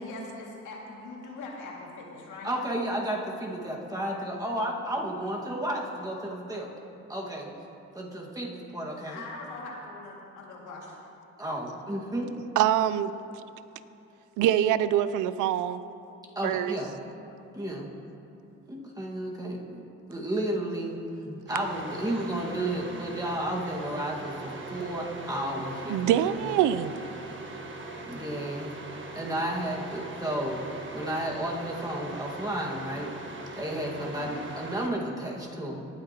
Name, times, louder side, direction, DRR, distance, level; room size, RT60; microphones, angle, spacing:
voice 1, 0.0-2.5 9.1-11.0 34.2-34.5, left 3 dB, 85° left, -2 dB, 2.2 m, -42 dB
voice 2, 2.4-6.7 7.1-7.5 7.9-9.2 11.4-12.3 16.3-17.0 17.5-17.9 18.7-19.8 20.1-21.0 21.2-26.4 28.0-28.7 29.1-30.6 30.9-33.1 33.5-35.8, right 1 dB, 10° right, -2 dB, 1.7 m, -32 dB
voice 3, 12.6-13.1 14.4-15.8 16.4-16.8 25.9-26.9, right 11 dB, 85° right, 15 dB, 0.5 m, -24 dB
sound 1, 21.5-34.9, right 2 dB, 40° right, 1.5 m, -41 dB
18.5 x 9.0 x 2.9 m, 2.8 s
cardioid pair, 90°, 30 cm